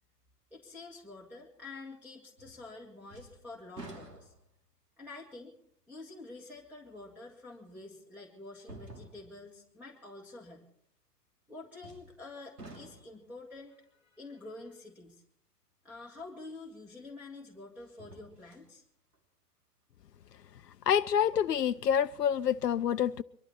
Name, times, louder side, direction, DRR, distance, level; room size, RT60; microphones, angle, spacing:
voice 1, 0.5-4.3 5.0-5.5 5.9-10.7 11.5-15.2 15.8-18.8, left 3 dB, 5° right, 1.9 m, -48 dB
sound 1, 2.4-2.8 3.1-4.7 5.3-5.4 7.2-7.3 8.6-9.5 11.8-12.3 12.6-13.3 16.3-16.4 17.8-18.7 19.1-19.2, right 2 dB, 80° right, 3.2 m, -50 dB
voice 2, 20.9-23.2, left 9 dB, 75° left, 0.6 m, -27 dB
24.0 x 12.0 x 4.3 m
figure-of-eight pair, 125°, 48 cm